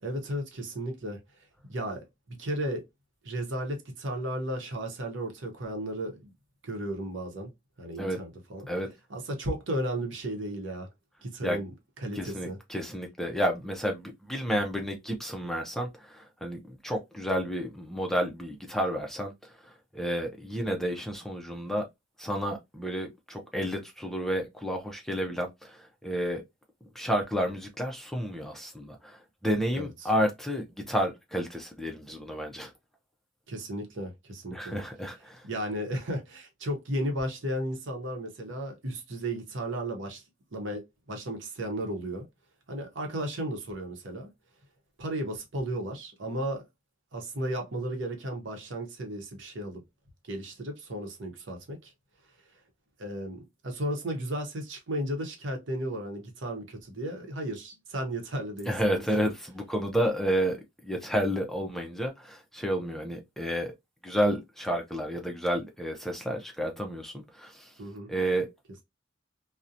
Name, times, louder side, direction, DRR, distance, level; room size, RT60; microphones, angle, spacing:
voice 1, 0.0-1.2 1.7-2.8 3.2-6.3 6.6-7.5 7.8-8.7 9.1-10.9 11.2-11.7 12.0-12.6 29.7-30.1 33.5-34.8 35.4-40.2 40.5-42.3 42.7-44.3 45.0-46.6 47.1-49.8 50.2-51.9 53.0-59.0 67.8-68.1, right 1 dB, 65° right, 0.8 m, -34 dB
voice 2, 12.1-21.8 22.2-26.4 26.9-32.7 34.5-35.4 58.7-60.6 60.8-63.7 64.0-67.7 68.1-68.5, equal, ahead, 0.4 m, -31 dB
2.7 x 2.1 x 2.4 m
head